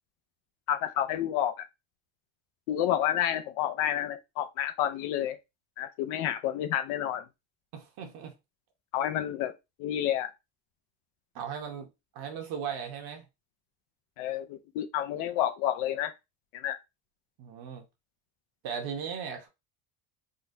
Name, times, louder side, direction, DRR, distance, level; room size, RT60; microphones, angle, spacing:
voice 1, 0.7-1.7 2.7-5.4 5.8-7.2 8.9-9.5 9.8-10.3 14.2-16.1 16.5-16.8, left 11 dB, 85° left, 0.6 m, -29 dB
voice 2, 7.7-8.3 11.3-11.9 12.1-13.2 17.4-17.8 18.6-19.5, right 7 dB, 50° right, 0.8 m, -37 dB
3.8 x 2.2 x 2.5 m
cardioid pair, 170°, 48 cm